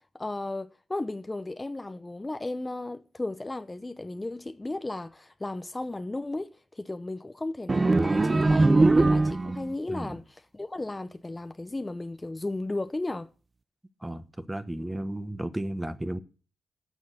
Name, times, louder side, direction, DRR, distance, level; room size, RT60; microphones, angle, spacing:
voice 1, 0.1-13.3, left 2 dB, 25° left, 0.7 m, -35 dB
sound 1, 7.7-9.7, right 2 dB, 35° right, 0.5 m, -21 dB
voice 2, 9.9-10.2 14.0-16.2, right 1 dB, 15° right, 1.3 m, -34 dB
9.6 x 6.4 x 7.8 m
cardioid pair, 55°, 0 cm